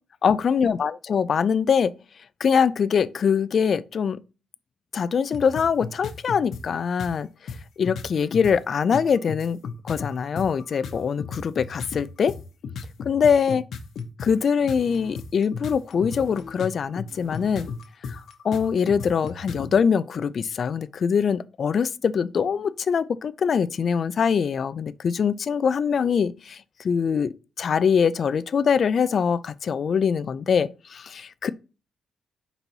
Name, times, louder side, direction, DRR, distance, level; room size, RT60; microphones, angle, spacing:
voice 1, 0.2-1.9 2.4-4.2 4.9-7.3 7.8-9.6 9.8-12.3 13.0-13.6 14.2-17.7 18.4-26.6 26.8-27.3 27.6-31.5, left 6 dB, 45° left, 0.4 m, -23 dB
sound 1, 5.3-6.6 7.0-7.1 7.5-8.6 8.9-19.7, left 5 dB, 65° left, 0.9 m, -35 dB
5.4 x 4.0 x 4.4 m
wide cardioid pair, 155°, 0 cm